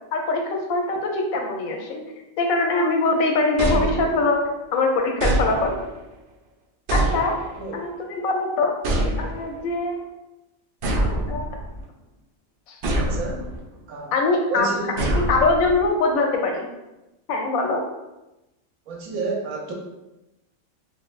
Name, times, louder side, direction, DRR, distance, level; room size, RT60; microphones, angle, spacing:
voice 1, 0.1-2.0 2.4-5.8 6.9-7.4 7.7-8.8 9.2-10.0 11.3-11.6 12.7-12.8 14.1-14.7 15.3-16.7 17.3-17.8, left 3 dB, 90° left, 2 dB, 1.0 m, -23 dB
sound 1, 3.6-4.5 5.2-6.0 6.9-7.7 8.8-9.6 10.8-11.8 12.8-13.6 15.0-15.9, right 1 dB, 65° right, 0.5 m, -25 dB
voice 2, 13.0-13.5 13.9-14.9 18.9-19.7, right 3 dB, 90° right, -1 dB, 1.1 m, -31 dB
3.7 x 2.0 x 2.4 m, 0.98 s
omnidirectional pair, 1.4 m